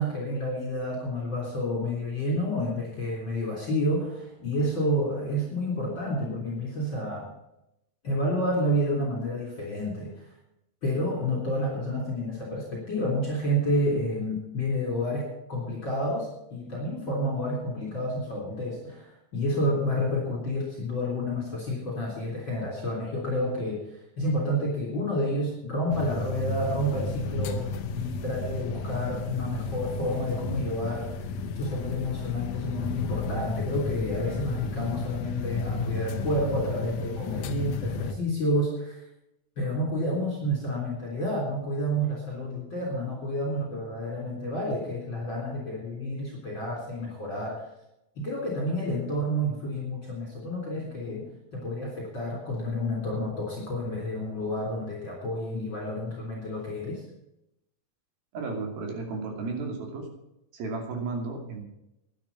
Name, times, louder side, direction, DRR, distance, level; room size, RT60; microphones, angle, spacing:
voice 1, 0.0-7.3 8.0-10.1 10.8-31.3 31.6-39.0 39.6-47.6 48.2-57.0, equal, 30° left, -3 dB, 3.9 m, -30 dB
sound 1, 25.9-38.1, left 3 dB, 80° left, 1.5 m, -33 dB
voice 2, 58.3-60.1 60.5-61.6, right 3 dB, 70° right, 2 dB, 4.5 m, -33 dB
12.0 x 10.0 x 7.1 m, 0.86 s
omnidirectional pair, 4.4 m